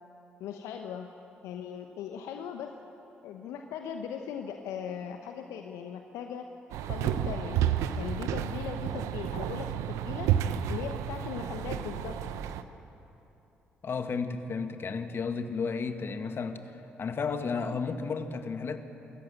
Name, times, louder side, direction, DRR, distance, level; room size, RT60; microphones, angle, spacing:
voice 1, 0.4-1.1 1.4-2.7 3.2-6.4 6.8-7.6 8.0-10.3 10.7-12.2, left 8 dB, 70° left, 5 dB, 1.0 m, -39 dB
sound 1, 6.7-12.6, right 10 dB, 70° right, 0.8 m, -31 dB
voice 2, 13.8-16.6 17.0-18.8, left 5 dB, 50° left, 8 dB, 1.7 m, -32 dB
25.0 x 14.5 x 9.0 m, 3.0 s
hypercardioid pair, 45°, 5 cm